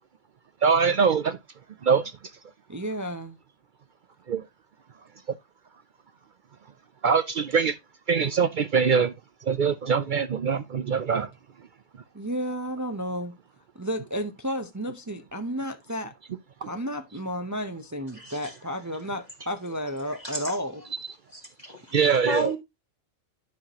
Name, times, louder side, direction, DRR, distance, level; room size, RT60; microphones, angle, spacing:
voice 1, 0.6-1.4 1.8-2.1 4.3-4.4 7.0-7.8 8.1-9.1 9.4-11.3 16.6-16.7 21.9-22.5, right 6 dB, 60° right, 0.5 m, -23 dB
voice 2, 2.7-3.4 12.1-13.4 13.7-16.1 16.6-20.8, equal, 20° right, 0.6 m, -32 dB
voice 3, 18.1-18.5 20.2-20.6 21.3-22.6, right 1 dB, 35° left, 1.3 m, -33 dB
10.5 x 5.8 x 2.9 m
omnidirectional pair, 1.4 m